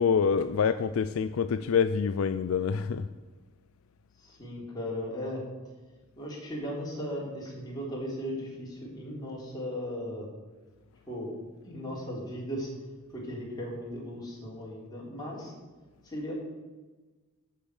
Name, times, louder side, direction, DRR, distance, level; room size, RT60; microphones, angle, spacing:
voice 1, 0.0-3.1, left 6 dB, 65° left, 0.4 m, -26 dB
voice 2, 4.2-5.4 6.2-10.3 11.1-11.3 11.6-12.7 13.1-15.5 16.0-16.3, equal, 20° left, 3.5 m, -37 dB
8.5 x 7.0 x 8.0 m
head